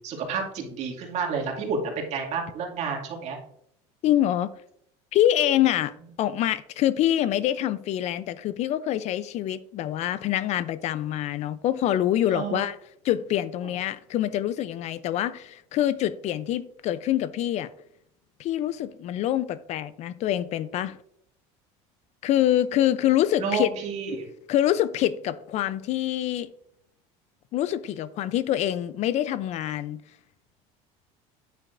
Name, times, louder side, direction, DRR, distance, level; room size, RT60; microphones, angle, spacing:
voice 1, 0.0-3.4 12.3-12.6 23.4-24.3, right 5 dB, 50° right, 2.4 m, -30 dB
voice 2, 4.0-4.5 5.1-12.8 13.0-17.7 18.4-21.0 22.2-23.7 24.5-26.5 27.5-30.0, left 12 dB, 50° left, 0.5 m, -25 dB
9.2 x 9.0 x 2.6 m
cardioid pair, 125°, 15 cm